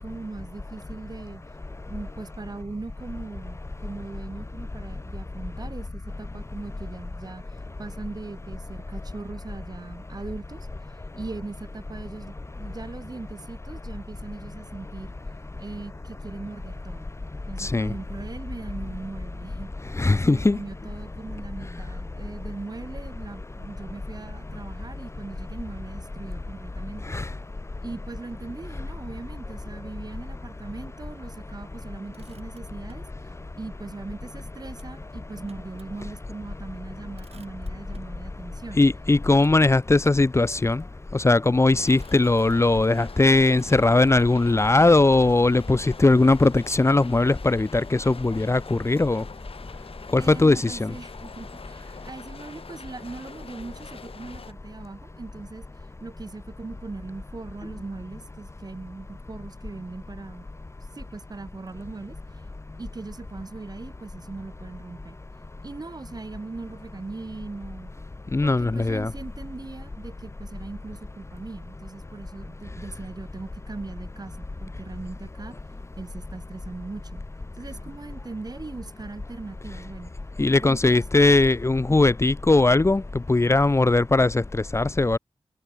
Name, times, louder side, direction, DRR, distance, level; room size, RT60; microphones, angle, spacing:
voice 1, 0.0-1.4 1.9-7.5 7.8-10.7 11.2-15.1 15.6-17.1 17.5-19.7 20.2-27.1 27.8-33.1 33.6-38.8 50.2-55.7 56.0-60.5 60.9-62.2 62.8-65.2 65.6-67.9 68.4-75.6 76.0-77.2 77.6-80.1 80.6-81.3, right 3 dB, 40° right, 5.0 m, -39 dB
voice 2, 20.0-20.6 27.1-27.2 38.8-40.8 41.1-49.2 50.1-50.9 68.3-69.1 80.4-83.0 83.3-84.4 84.7-85.2, left 2 dB, 25° left, 1.0 m, -19 dB
Motor vehicle (road), 32.1-33.1 34.7-36.0 36.4-36.5 36.8-38.2 39.4-40.4 41.2-41.5 41.8-43.1 43.5-44.7, right 6 dB, 90° right, 7.3 m, -57 dB
sound 1, 41.7-54.5, left 5 dB, 70° left, 4.1 m, -44 dB
wide cardioid pair, 95°, 10 cm